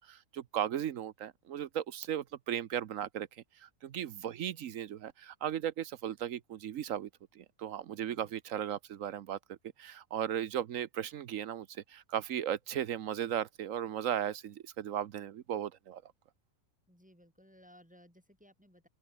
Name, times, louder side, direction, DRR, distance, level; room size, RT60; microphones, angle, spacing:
voice 1, 0.0-16.0, right 10 dB, 65° right, 1.0 m, -36 dB
voice 2, 4.2-4.7 8.1-8.3 16.9-18.9, equal, 5° right, 6.6 m, -61 dB
open air
omnidirectional pair, 1.6 m